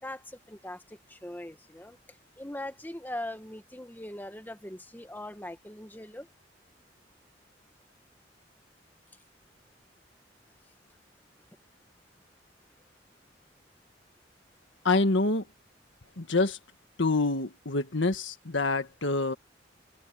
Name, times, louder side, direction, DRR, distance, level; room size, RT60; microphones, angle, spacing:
voice 1, 0.0-2.0 2.4-6.3, left 1 dB, 10° left, 1.6 m, -41 dB
voice 2, 14.8-15.4 16.2-16.6 17.0-19.3, left 3 dB, 80° left, 1.6 m, -26 dB
head